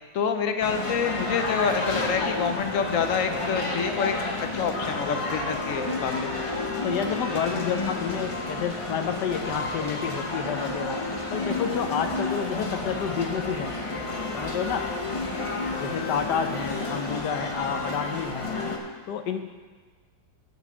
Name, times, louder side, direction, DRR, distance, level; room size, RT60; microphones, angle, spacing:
voice 1, 0.1-6.3, left 6 dB, 60° left, 7 dB, 1.0 m, -27 dB
sound 1, 0.6-18.8, left 2 dB, 25° left, 0.9 m, -30 dB
voice 2, 6.8-11.0 11.3-13.7 14.3-14.9 15.8-18.5 19.1-19.5, left 7 dB, 75° left, 7 dB, 1.4 m, -29 dB
9.5 x 7.6 x 6.1 m, 1.5 s
omnidirectional pair, 1.8 m